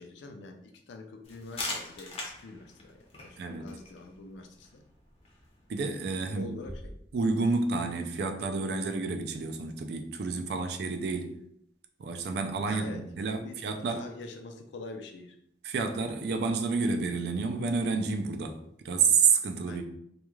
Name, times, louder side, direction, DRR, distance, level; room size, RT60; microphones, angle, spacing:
voice 1, 0.0-4.8 6.3-7.0 12.7-13.0 13.4-13.6 13.9-15.4 18.6-18.7 19.7-19.8, left 3 dB, 80° left, 4 dB, 0.4 m, -45 dB
sound 1, 1.2-6.8, left 2 dB, 35° left, 0.5 m, -43 dB
voice 2, 5.7-6.6 7.1-11.4 12.0-14.0 15.6-18.6 18.8-19.8, right 4 dB, 65° right, 6 dB, 0.3 m, -29 dB
sound 2, 6.6-8.3, equal, 25° right, 0.8 m, -47 dB
2.3 x 2.2 x 3.0 m, 0.72 s
head